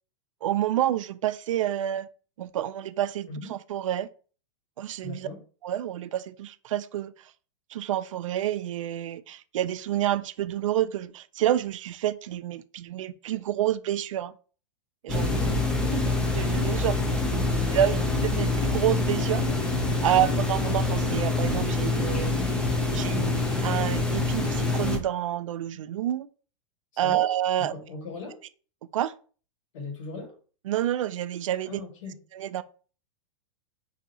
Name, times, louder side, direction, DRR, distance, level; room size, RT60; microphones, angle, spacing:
voice 1, 0.4-2.1 2.4-4.1 4.8-5.3 5.6-7.3 7.7-14.3 15.0-15.3 15.9-16.0 16.3-17.0 17.7-19.4 20.0-22.4 22.9-23.4 23.6-26.3 27.0-27.7 28.9-29.1 30.7-31.8 32.3-32.6, right 12 dB, 85° right, 0.4 m, -28 dB
voice 2, 5.0-5.4 15.1-15.6 17.5-18.1 20.1-20.3 23.1-23.4 27.0-27.3 27.6-28.4 29.7-30.3 31.7-32.2, left 3 dB, 75° left, 1.8 m, -38 dB
sound 1, 15.1-25.0, left 2 dB, 5° left, 0.5 m, -26 dB
5.0 x 2.7 x 2.8 m
supercardioid pair, 145°, 16 cm